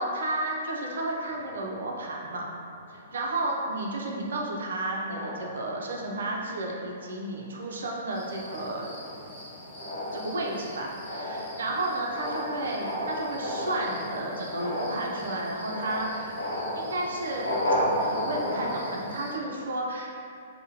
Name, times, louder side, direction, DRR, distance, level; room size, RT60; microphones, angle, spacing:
voice 1, 0.0-2.5 3.1-8.9 10.1-16.4 16.7-17.6 18.0-20.2, right 2 dB, 65° right, -1 dB, 0.5 m, -32 dB
sound 1, 1.3-3.1 3.8-4.0 4.3-4.7 5.1-6.3 6.8-7.1 7.5-19.1, equal, 85° left, 0.6 m, -34 dB
sound 2, 8.1-19.4, left 1 dB, 15° left, 1.2 m, -47 dB
3.6 x 2.1 x 2.7 m, 2.4 s
figure-of-eight pair, 115°, 0 cm